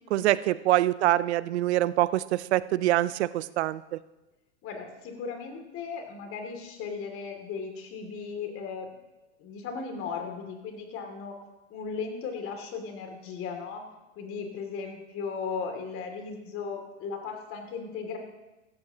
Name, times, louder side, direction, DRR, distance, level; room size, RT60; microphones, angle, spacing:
voice 1, 0.1-4.0, right 15 dB, 70° right, 18 dB, 0.6 m, -25 dB
voice 2, 4.6-8.9 9.4-11.4 11.7-13.8 14.2-18.2, left 5 dB, 40° left, 4 dB, 2.8 m, -36 dB
15.5 x 13.5 x 3.0 m, 1.0 s
hypercardioid pair, 105°, 34 cm